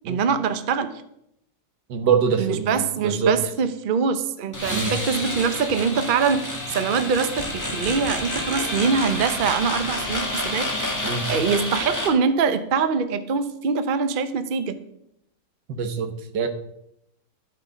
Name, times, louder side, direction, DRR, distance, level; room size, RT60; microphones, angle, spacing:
voice 1, 0.1-0.9 2.4-10.7 11.3-14.8, right 5 dB, 45° right, 10 dB, 0.6 m, -23 dB
voice 2, 1.9-3.4 4.7-4.9 11.0-11.3 15.7-16.5, right 6 dB, 80° right, 7 dB, 1.8 m, -24 dB
sound 1, 4.5-12.1, left 1 dB, 10° left, 1.8 m, -29 dB
12.5 x 7.8 x 5.1 m, 0.79 s
omnidirectional pair, 1.9 m